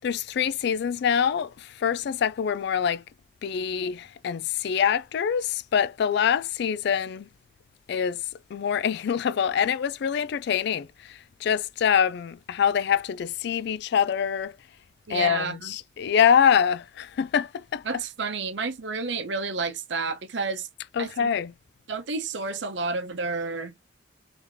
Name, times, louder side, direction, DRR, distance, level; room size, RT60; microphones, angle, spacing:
voice 1, 0.0-3.0 3.4-7.3 7.9-8.2 8.5-14.6 15.1-17.8 21.0-21.5, left 8 dB, 60° left, 0.3 m, -25 dB
voice 2, 15.1-15.7 17.8-20.7 21.0-21.3 21.9-23.8, right 4 dB, 70° right, 0.7 m, -30 dB
3.3 x 2.8 x 3.5 m
head